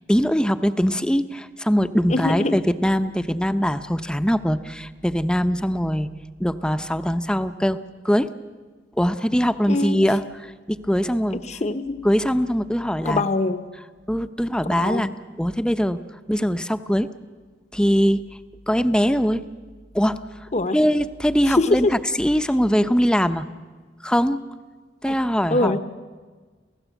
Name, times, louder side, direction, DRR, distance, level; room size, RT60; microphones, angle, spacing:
voice 1, 0.1-6.1 6.4-7.8 8.0-8.3 9.0-11.4 12.0-13.2 14.1-15.1 15.4-16.0 16.3-17.1 17.7-18.2 18.7-19.5 19.9-20.2 20.7-23.5 24.0-24.5 25.0-25.8, equal, 5° left, 11 dB, 0.7 m, -22 dB
voice 2, 2.1-2.6 9.7-10.0 11.3-12.0 13.0-13.6 14.6-15.1 20.5-20.8 21.5-21.9 25.1-25.2 25.5-25.8, left 2 dB, 40° left, 11 dB, 0.9 m, -23 dB
29.0 x 16.0 x 8.2 m, 1.5 s
head